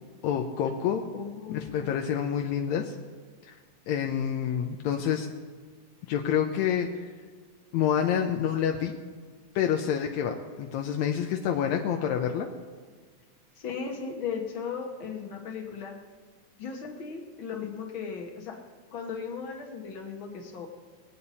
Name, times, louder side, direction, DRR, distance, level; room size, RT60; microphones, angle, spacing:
voice 1, 0.2-1.0 1.5-3.0 3.4-3.6 3.9-5.3 6.1-7.1 7.7-8.9 9.6-12.5, left 8 dB, 80° left, 3 dB, 1.9 m, -28 dB
voice 2, 1.1-2.0 13.6-16.0 16.6-18.6 18.9-20.7, left 6 dB, 50° left, 2 dB, 1.7 m, -36 dB
21.0 x 8.6 x 4.2 m, 1.5 s
omnidirectional pair, 3.3 m